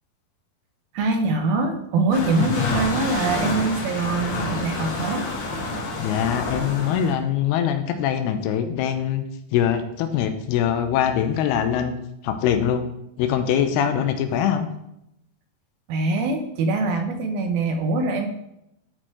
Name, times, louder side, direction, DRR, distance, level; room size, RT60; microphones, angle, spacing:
voice 1, 0.9-5.3 15.9-18.3, right 3 dB, 75° right, 5 dB, 2.4 m, -23 dB
sound 1, 2.1-7.1, left 2 dB, 50° left, 2.5 m, -28 dB
voice 2, 6.0-9.2 9.5-12.0 12.2-12.8 13.2-14.7, left 9 dB, 85° left, 7 dB, 2.7 m, -23 dB
11.0 x 4.4 x 4.6 m, 0.81 s
omnidirectional pair, 4.7 m